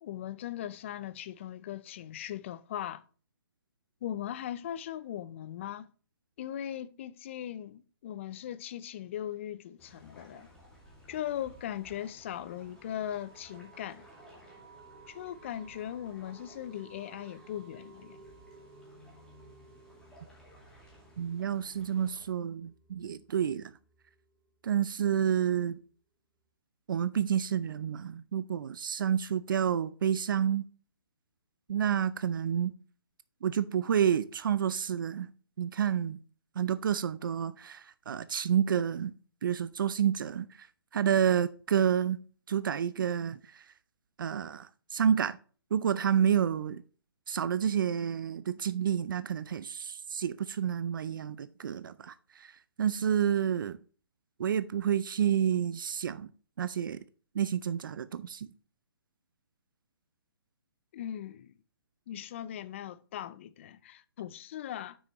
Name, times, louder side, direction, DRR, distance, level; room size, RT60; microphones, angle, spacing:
voice 1, 0.0-3.0 4.0-5.9 6.4-10.5 11.1-14.1 15.1-18.2 60.9-61.5 62.1-65.0, left 11 dB, 30° left, 0.4 m, -39 dB
sound 1, 9.8-22.3, equal, 5° left, 2.1 m, -57 dB
sound 2, 10.3-24.7, right 4 dB, 10° right, 1.8 m, -58 dB
voice 2, 21.2-23.7 24.6-25.8 26.9-30.6 31.7-32.7 33.4-35.3 35.6-36.2 36.6-39.1 39.4-40.7 40.9-42.2 42.5-43.6 44.2-45.4 45.7-46.8 47.3-53.8 54.4-56.3 56.6-57.0 57.3-58.5, right 8 dB, 60° right, 0.4 m, -29 dB
7.9 x 6.2 x 3.0 m
hypercardioid pair, 155°, 13 cm